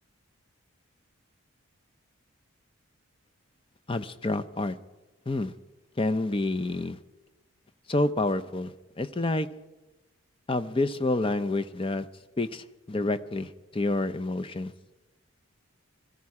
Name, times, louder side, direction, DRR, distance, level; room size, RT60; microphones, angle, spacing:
voice 1, 3.9-4.8 5.3-5.5 6.0-7.0 7.9-9.5 10.5-12.1 12.4-14.7, left 2 dB, 25° left, 11 dB, 0.6 m, -28 dB
22.0 x 13.5 x 4.8 m, 1.1 s
head